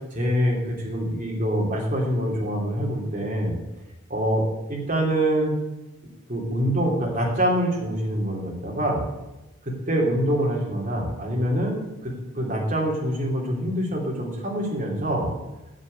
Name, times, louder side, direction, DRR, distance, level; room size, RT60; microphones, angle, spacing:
voice 1, 0.1-3.6 4.1-5.5 6.3-9.0 9.6-15.3, equal, 40° right, -2 dB, 2.9 m, -25 dB
7.8 x 7.6 x 8.4 m, 1.0 s
head